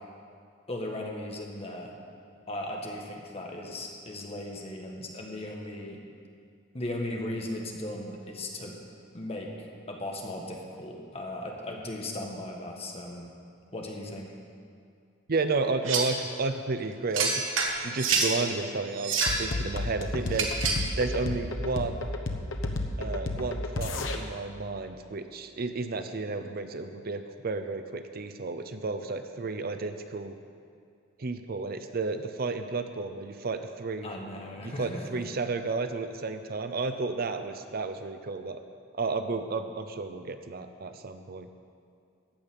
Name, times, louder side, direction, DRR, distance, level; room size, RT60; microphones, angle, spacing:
voice 1, 0.7-1.9 2.5-6.0 6.7-8.8 9.1-9.5 9.9-13.3 13.7-14.3 34.0-35.2, left 1 dB, 30° left, 0 dB, 1.6 m, -37 dB
voice 2, 15.3-17.4 17.8-20.5 21.0-22.1 23.0-30.4 31.2-34.1 34.6-38.6 38.9-41.5, right 3 dB, 50° right, 8 dB, 0.6 m, -32 dB
sound 1, 15.9-16.2 17.1-18.4 18.9-19.5 20.3-20.9, right 4 dB, 85° right, 1.6 m, -27 dB
sound 2, 19.3-24.2, left 2 dB, 75° left, 1.0 m, -32 dB
15.0 x 5.4 x 9.1 m, 2.3 s
head